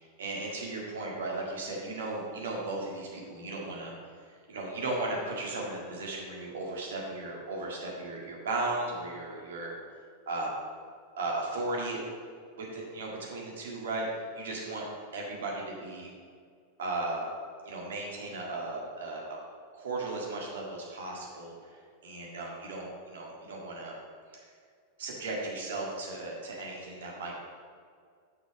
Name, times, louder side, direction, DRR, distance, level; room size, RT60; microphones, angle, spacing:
voice 1, 0.2-3.9 4.5-9.7 10.2-10.5 11.2-12.0 12.5-14.0 14.3-14.8 15.1-16.1 16.8-17.3 17.6-19.2 19.7-21.5 22.0-23.9 25.0-27.3, right 2 dB, 60° right, -2 dB, 1.8 m, -36 dB
6.7 x 6.0 x 5.0 m, 2.1 s
figure-of-eight pair, 90°, 0 cm